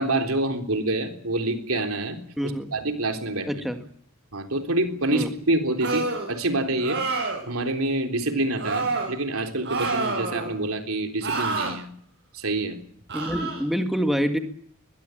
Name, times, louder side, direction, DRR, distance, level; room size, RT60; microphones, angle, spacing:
voice 1, 0.0-2.2 2.7-3.6 4.3-11.9 12.3-12.8, right 2 dB, 75° right, 5 dB, 3.6 m, -27 dB
voice 2, 2.4-2.7 3.5-3.8 5.1-5.3 13.1-14.4, equal, ahead, 6 dB, 1.8 m, -26 dB
sound 1, 5.8-6.3 6.8-7.4 8.6-9.1 9.6-10.5 11.2-11.7 13.1-13.6, right 3 dB, 55° right, 7.7 m, -27 dB
22.0 x 21.0 x 9.2 m, 0.64 s
head